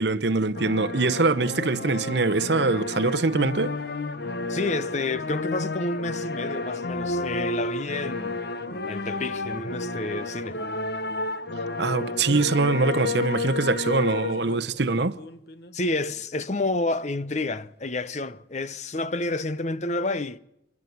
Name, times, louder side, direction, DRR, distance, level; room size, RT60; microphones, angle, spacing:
voice 1, 0.0-3.7 11.8-15.2, right 3 dB, 60° right, 0.9 m, -23 dB
sound 1, 0.5-15.7 16.1-16.2 16.5-16.7 18.3-18.4, left 2 dB, 55° left, 1.1 m, -31 dB
voice 2, 4.5-8.4 8.9-10.6 15.7-20.4, left 2 dB, 35° left, 0.8 m, -29 dB
29.5 x 11.0 x 9.5 m
head